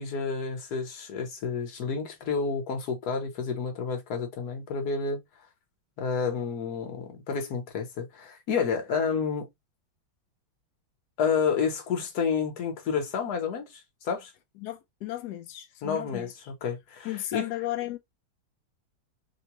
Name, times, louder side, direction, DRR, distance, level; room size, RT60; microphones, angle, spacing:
voice 1, 0.0-5.2 6.0-9.5 11.2-14.3 15.8-17.5, left 6 dB, 55° left, 1.3 m, -30 dB
voice 2, 14.6-16.3 17.0-18.0, left 15 dB, 80° left, 0.8 m, -34 dB
3.6 x 2.2 x 2.8 m
omnidirectional pair, 2.3 m